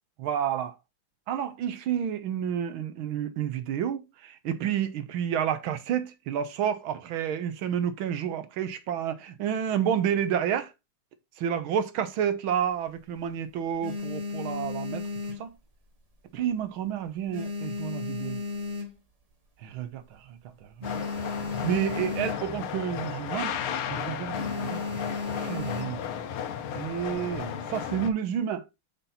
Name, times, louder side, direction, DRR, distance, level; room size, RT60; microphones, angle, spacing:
voice 1, 0.2-0.7 1.3-10.7 11.4-15.0 15.4-15.5 16.3-18.4 19.6-21.1 21.6-23.6 23.9-24.8 25.4-26.0 26.8-28.6, right 9 dB, 75° right, 1.6 m, -30 dB
sound 1, 12.5-13.2 13.6-16.1 16.4-16.8 17.1-19.3 19.8-19.9 20.1-20.2 20.5-22.7 23.0-23.3 23.6-23.9 24.3-26.1 26.9-27.4, left 3 dB, 30° right, 0.7 m, -35 dB
sound 2, 20.8-28.1, left 8 dB, 80° left, 1.6 m, -34 dB
5.7 x 5.5 x 4.1 m
omnidirectional pair, 2.3 m